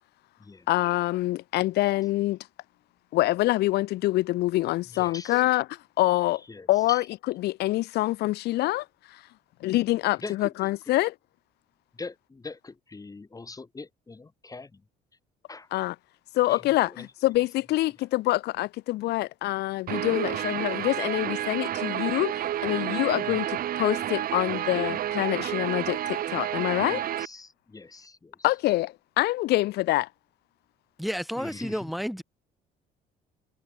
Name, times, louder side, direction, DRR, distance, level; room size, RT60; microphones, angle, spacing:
voice 1, 0.7-2.4 3.1-6.4 6.7-7.0 7.4-8.9 9.1-9.2 9.6-11.1 15.7-15.9 16.3-27.0 28.4-30.1, left 17 dB, 75° left, 1.0 m, -26 dB
voice 2, 4.9-5.4 6.5-7.1 10.0-10.7 11.9-14.8 15.5-15.7 16.5-17.1 23.2-23.4 26.9-28.5 31.4-31.9, left 3 dB, 20° left, 7.5 m, -42 dB
Guitar, 19.9-27.2, right 12 dB, 60° right, 2.0 m, -30 dB
voice 3, 31.0-32.2, equal, ahead, 5.0 m, -31 dB
cardioid pair, 110°, 17 cm